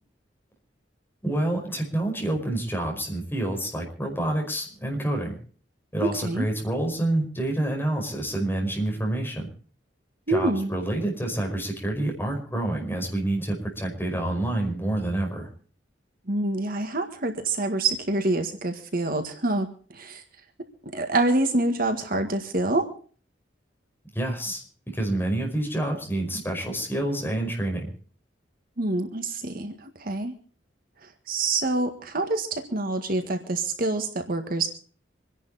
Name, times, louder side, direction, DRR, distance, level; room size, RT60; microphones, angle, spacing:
voice 1, 1.2-5.4 5.9-9.5 10.3-15.5 24.1-24.6 24.9-27.9, right 1 dB, 10° left, 1 dB, 5.2 m, -28 dB
voice 2, 6.0-6.5 10.3-10.8 16.3-20.2 20.9-22.9 28.8-30.3 31.0-34.7, right 2 dB, 50° right, 6 dB, 1.8 m, -26 dB
26.0 x 11.0 x 4.2 m, 0.42 s
head